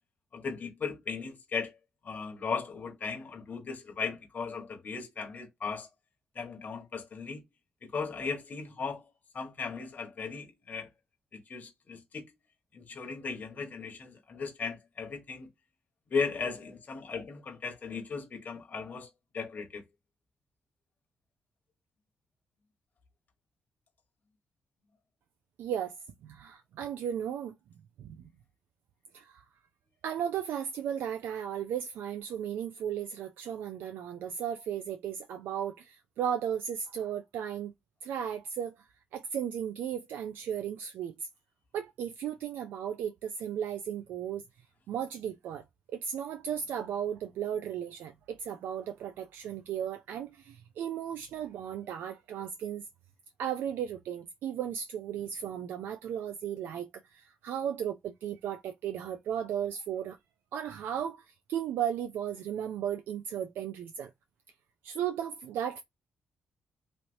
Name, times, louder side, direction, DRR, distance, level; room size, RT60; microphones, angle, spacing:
voice 1, 0.3-1.8 2.0-5.9 6.3-7.4 7.8-9.0 9.3-10.9 11.3-12.3 12.7-15.5 16.1-19.1 19.3-19.8, left 5 dB, 50° left, 1.2 m, -37 dB
voice 2, 25.6-25.9 26.2-27.5 28.0-28.3 29.1-29.5 30.0-37.7 38.0-38.8 39.1-41.3 41.7-44.4 44.9-45.6 45.9-52.8 53.4-60.2 60.5-64.1 64.8-65.8, right 9 dB, 85° right, 0.4 m, -35 dB
3.1 x 2.8 x 2.6 m
supercardioid pair, 55°, 3 cm